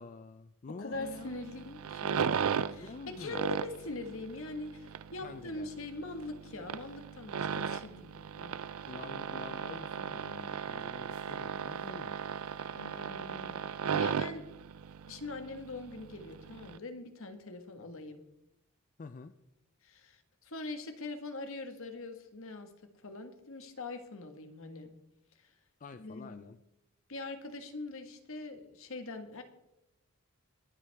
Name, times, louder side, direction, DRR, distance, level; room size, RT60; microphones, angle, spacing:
voice 1, 0.0-1.4 2.8-3.4 5.2-5.7 8.9-12.4 19.0-19.3 25.8-26.6, left 4 dB, 40° left, 11 dB, 0.4 m, -47 dB
voice 2, 0.8-2.3 2.6-8.5 12.7-13.6 13.9-14.4 15.1-18.2 19.8-22.7 23.0-24.9 25.4-25.5 26.0-26.5 27.1-29.4, left 2 dB, 65° left, 7 dB, 1.6 m, -43 dB
sound 1, 0.9-16.8, right 7 dB, 70° right, 0.4 m, -36 dB
22.5 x 8.3 x 3.5 m, 0.87 s
head